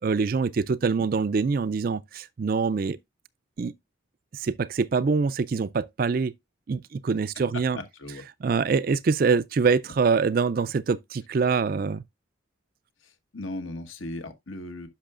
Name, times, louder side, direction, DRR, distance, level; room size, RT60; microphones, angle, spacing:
voice 1, 0.0-3.0 3.6-3.7 4.3-6.3 6.7-7.8 8.4-12.0, right 5 dB, 45° right, 0.4 m, -24 dB
voice 2, 7.5-8.2 13.0-14.9, left 2 dB, 85° left, 1.4 m, -37 dB
10.0 x 6.0 x 2.4 m
head